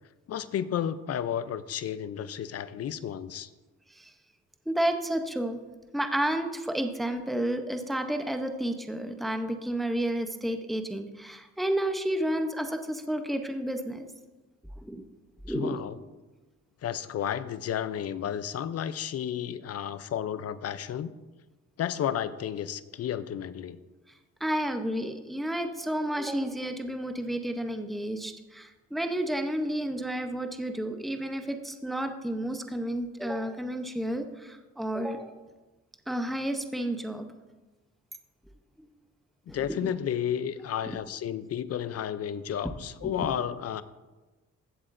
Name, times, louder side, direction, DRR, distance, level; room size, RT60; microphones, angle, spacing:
voice 1, 0.3-3.5 15.5-16.0 16.8-21.1 21.8-23.8 39.5-43.8, left 9 dB, 55° left, 15 dB, 0.6 m, -32 dB
voice 2, 4.7-5.6 5.9-14.1 14.8-15.0 15.4-15.8 24.4-35.4 36.1-37.3 39.5-39.9 40.9-41.0 43.0-43.3, right 1 dB, ahead, 6 dB, 0.8 m, -31 dB
15.0 x 7.9 x 2.6 m, 1.2 s
cardioid pair, 90°, 30 cm